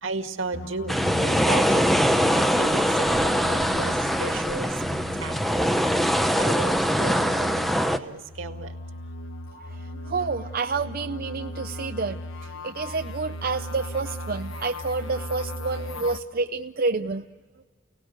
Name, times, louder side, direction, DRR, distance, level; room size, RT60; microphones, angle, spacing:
voice 1, 0.0-4.8 5.1-5.8 6.4-8.8 9.5-9.7, right 3 dB, 80° right, 6 dB, 1.9 m, -35 dB
sound 1, 0.5-2.7 3.1-6.6 6.9-16.2, left 1 dB, 85° left, 1.4 m, -38 dB
sound 2, 0.9-8.0, equal, ahead, 0.8 m, -22 dB
voice 2, 9.6-12.2 12.6-17.3, right 4 dB, 50° right, 6 dB, 0.6 m, -29 dB
29.5 x 18.5 x 7.9 m, 1.5 s
head